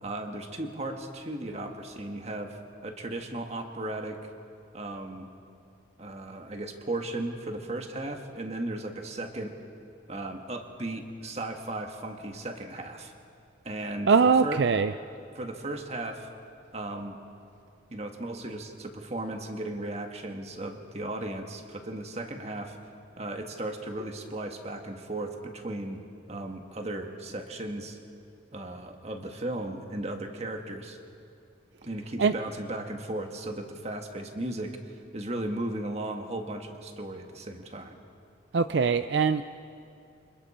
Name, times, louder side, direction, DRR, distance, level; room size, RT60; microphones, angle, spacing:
voice 1, 0.0-4.2 4.7-5.3 6.0-9.5 10.1-13.1 13.6-14.6 15.3-16.3 16.7-17.1 17.9-22.8 23.2-26.0 26.3-28.0 28.5-31.0 31.8-38.0, right 1 dB, 35° right, 4 dB, 1.6 m, -36 dB
voice 2, 14.1-14.9 32.2-32.3 38.5-39.4, right 5 dB, 70° right, 11 dB, 0.5 m, -22 dB
28.5 x 26.5 x 4.3 m, 2.5 s
head